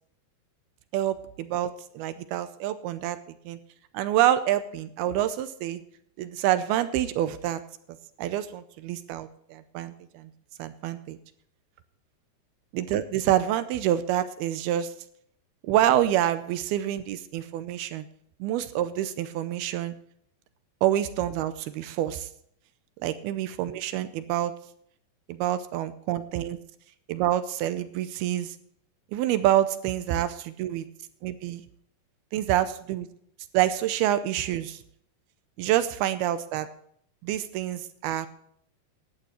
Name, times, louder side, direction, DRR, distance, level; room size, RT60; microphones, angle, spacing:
voice 1, 0.9-3.2 3.5-3.6 3.9-5.8 6.2-7.6 8.2-10.3 10.6-11.2 12.7-14.9 15.6-18.1 18.4-20.0 20.8-22.3 23.0-24.5 25.3-26.6 27.1-28.6 29.1-30.9 31.2-31.6 32.3-33.1 33.5-34.8 35.6-36.7 37.2-38.3, right 12 dB, 80° right, 12 dB, 2.4 m, -27 dB
16.5 x 11.0 x 3.1 m, 0.65 s
omnidirectional pair, 4.8 m